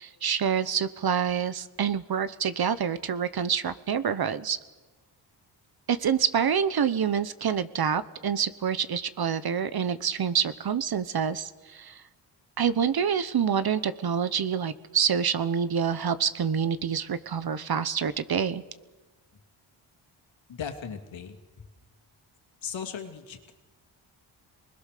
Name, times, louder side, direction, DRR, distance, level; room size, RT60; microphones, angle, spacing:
voice 1, 0.0-4.6 5.9-12.0 12.6-18.6, right 7 dB, 50° right, 15 dB, 1.2 m, -27 dB
voice 2, 20.5-21.7 22.6-23.5, left 7 dB, 75° left, 4 dB, 2.7 m, -38 dB
27.0 x 20.5 x 6.8 m, 1.2 s
cardioid pair, 90°, 46 cm